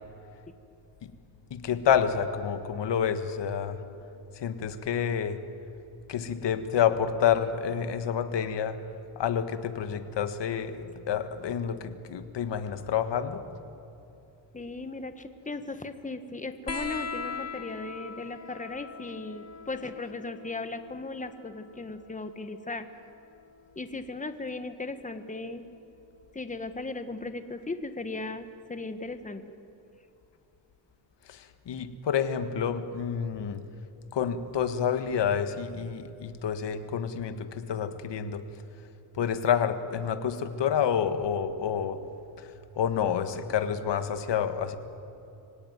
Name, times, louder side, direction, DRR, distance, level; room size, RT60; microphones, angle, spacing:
voice 1, 1.5-3.8 4.4-5.4 6.1-8.8 9.2-13.5 31.3-33.6 34.1-38.4 39.1-42.0 42.8-44.8, left 8 dB, 70° left, 10 dB, 1.7 m, -28 dB
voice 2, 14.5-22.9 23.7-25.6 26.3-29.5, left 3 dB, 15° left, 9 dB, 1.5 m, -37 dB
sound 1, 16.7-23.7 25.1-25.9 27.2-27.3, left 5 dB, 35° left, 1.7 m, -42 dB
24.5 x 17.5 x 9.5 m, 2.8 s
cardioid pair, 105°, 45 cm